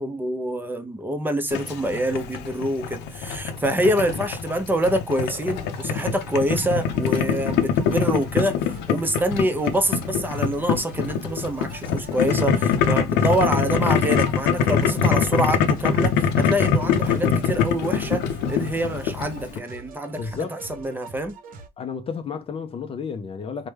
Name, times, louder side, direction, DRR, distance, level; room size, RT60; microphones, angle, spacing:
voice 1, 0.0-8.6 8.9-21.3, right 1 dB, 10° right, 0.6 m, -26 dB
Boiling, 1.5-19.6, left 7 dB, 90° left, 0.6 m, -24 dB
sound 1, 5.3-21.7, right 3 dB, 55° right, 0.7 m, -44 dB
voice 2, 20.1-20.6 21.8-23.7, left 6 dB, 35° left, 0.4 m, -32 dB
3.2 x 2.1 x 3.2 m
cardioid pair, 110°, 17 cm